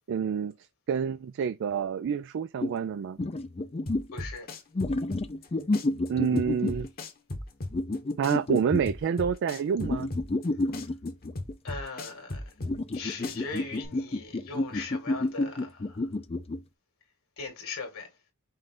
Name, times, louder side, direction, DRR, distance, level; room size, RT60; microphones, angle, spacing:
voice 1, 0.1-0.5 0.9-3.2 5.9-6.9 8.2-10.1, right 7 dB, 55° right, 0.3 m, -28 dB
sound 1, 2.6-2.7 3.2-4.1 4.8-6.9 7.7-8.8 9.8-11.5 12.6-16.6, left 2 dB, 30° left, 0.5 m, -30 dB
sound 2, 3.9-5.5 5.7-8.0 8.2-10.5 10.7-13.0 13.2-13.9, left 1 dB, 45° left, 1.1 m, -36 dB
voice 2, 4.1-4.5 11.6-12.5 12.9-16.1 17.4-18.1, left 4 dB, 70° left, 1.9 m, -40 dB
5.5 x 2.5 x 3.6 m
head